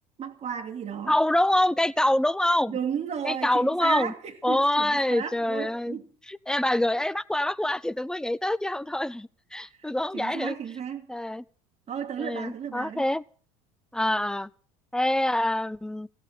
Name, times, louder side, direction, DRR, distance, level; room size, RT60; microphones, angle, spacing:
voice 1, 0.2-1.1 2.7-6.1 6.9-7.0 10.1-11.1 11.9-13.0, right 8 dB, 35° right, 2.6 m, -34 dB
voice 2, 1.1-2.8 3.2-4.1 4.4-6.0 6.3-10.5 11.1-11.4 12.2-13.2 13.9-14.5 14.9-16.1, left 1 dB, 5° left, 0.6 m, -25 dB
16.0 x 7.5 x 9.2 m
hypercardioid pair, 75°, 18 cm